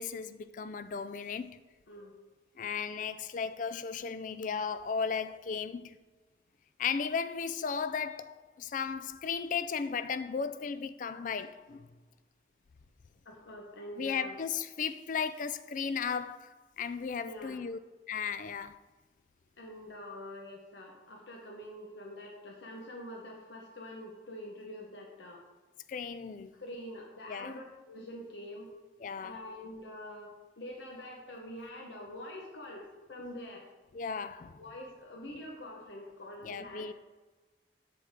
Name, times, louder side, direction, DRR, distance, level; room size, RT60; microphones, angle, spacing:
voice 1, 0.0-1.6 2.6-6.0 6.8-11.9 14.0-17.8 18.1-18.8 25.9-26.5 27.3-27.6 29.0-29.4 33.9-34.6 36.4-36.9, left 6 dB, 45° left, 0.3 m, -35 dB
voice 2, 1.9-2.2 11.1-11.2 13.2-14.4 17.2-17.6 19.6-25.4 26.6-28.7 29.2-33.7 34.6-36.9, left 1 dB, 80° left, 1.1 m, -45 dB
7.7 x 6.9 x 3.6 m
head